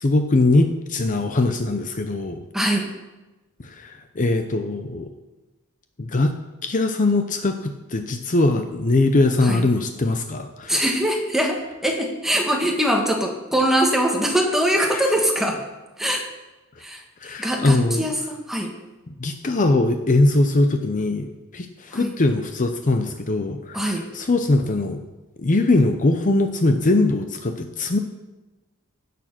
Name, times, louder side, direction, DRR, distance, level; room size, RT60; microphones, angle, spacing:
voice 1, 0.0-2.4 3.6-5.1 6.0-6.3 6.6-10.8 14.9-15.1 17.2-18.1 19.1-25.0 25.4-28.0, left 2 dB, 35° left, 7 dB, 0.7 m, -21 dB
voice 2, 2.5-2.9 9.4-9.7 10.7-15.6 16.0-16.3 16.8-18.7 21.9-22.2 23.7-24.1, equal, ahead, 1 dB, 1.6 m, -23 dB
16.0 x 6.9 x 5.9 m, 1.1 s
head